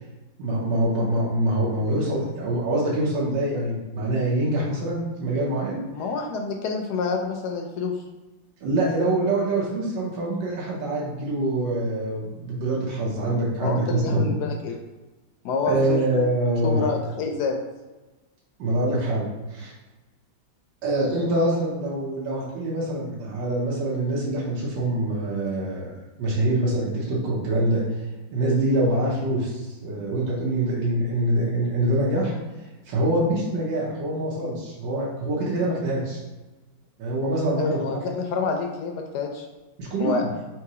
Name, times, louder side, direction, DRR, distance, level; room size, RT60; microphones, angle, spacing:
voice 1, 0.4-5.8 8.6-14.3 15.6-16.8 18.6-19.7 20.8-25.9 26.2-27.8 28.3-32.3 32.8-36.2 37.0-38.0 39.8-40.3, right 1 dB, 75° right, -6 dB, 1.6 m, -25 dB
voice 2, 5.9-8.0 13.6-14.7 15.4-16.0 16.6-17.6 37.5-39.5 40.0-40.3, left 4 dB, 75° left, 3 dB, 1.0 m, -28 dB
3.7 x 3.0 x 4.7 m, 1.2 s
omnidirectional pair, 2.1 m